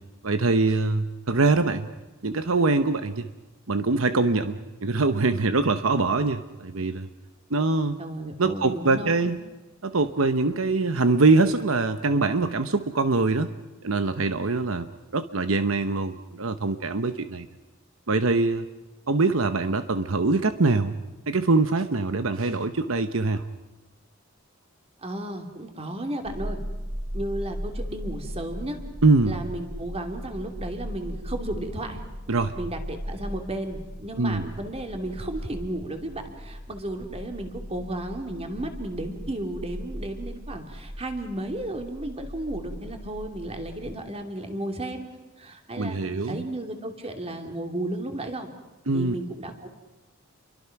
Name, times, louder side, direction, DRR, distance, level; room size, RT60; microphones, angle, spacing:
voice 1, 0.2-1.9 2.2-3.3 3.7-7.1 7.5-8.0 8.4-9.4 9.8-13.5 13.8-14.9 15.1-17.5 18.1-18.6 19.1-20.9 21.3-23.4 29.0-29.4 32.3-32.6 34.2-34.5 45.8-46.5 48.9-49.1, right 3 dB, 70° right, 10 dB, 1.0 m, -23 dB
voice 2, 8.0-9.3 25.0-26.6 27.1-28.8 29.2-32.0 32.6-45.0 45.4-46.0 46.3-48.5 48.9-49.7, right 1 dB, 30° right, 5 dB, 2.9 m, -34 dB
sound 1, 26.2-43.9, equal, 50° right, 3.0 m, -38 dB
30.0 x 23.5 x 6.0 m, 1.1 s
head